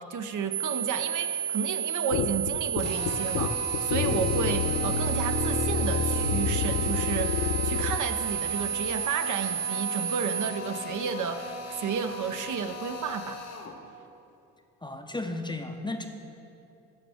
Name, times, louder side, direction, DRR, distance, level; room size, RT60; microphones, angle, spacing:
voice 1, 0.0-13.4, right 6 dB, 50° right, 8 dB, 0.6 m, -32 dB
sound 1, 0.5-10.5, right 8 dB, 70° right, 1.1 m, -31 dB
sound 2, 2.1-8.0, left 6 dB, 75° left, 0.5 m, -29 dB
Drill, 2.8-13.8, left 3 dB, 40° left, 1.0 m, -39 dB
voice 2, 14.8-16.1, left 2 dB, 10° left, 5 dB, 0.6 m, -34 dB
13.5 x 5.0 x 3.4 m, 2.7 s
supercardioid pair, 60°, 38 cm